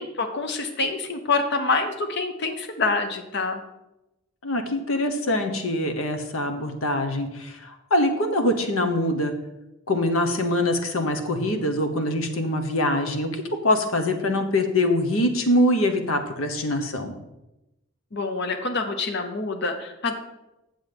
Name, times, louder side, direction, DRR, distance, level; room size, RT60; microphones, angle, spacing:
voice 1, 0.0-3.6 18.1-20.1, left 3 dB, 55° left, 6 dB, 0.9 m, -26 dB
voice 2, 4.4-9.3 9.9-17.2, left 1 dB, 80° left, 6 dB, 1.1 m, -24 dB
7.7 x 7.1 x 5.3 m, 0.95 s
head